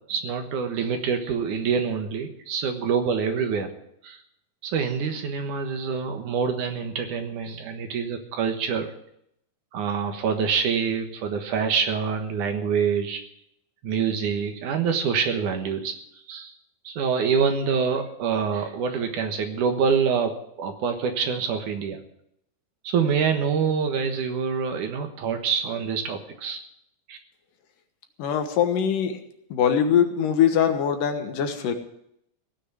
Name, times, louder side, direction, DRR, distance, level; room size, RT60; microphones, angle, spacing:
voice 1, 0.1-3.7 4.0-4.2 4.6-8.9 9.7-13.2 13.8-15.9 16.3-16.5 16.8-22.0 22.8-26.6 27.1-27.2, right 6 dB, 65° right, 6 dB, 2.7 m, -26 dB
voice 2, 28.2-29.2 29.5-31.7, left 8 dB, 75° left, 6 dB, 2.8 m, -22 dB
17.0 x 6.4 x 9.8 m, 0.75 s
omnidirectional pair, 4.1 m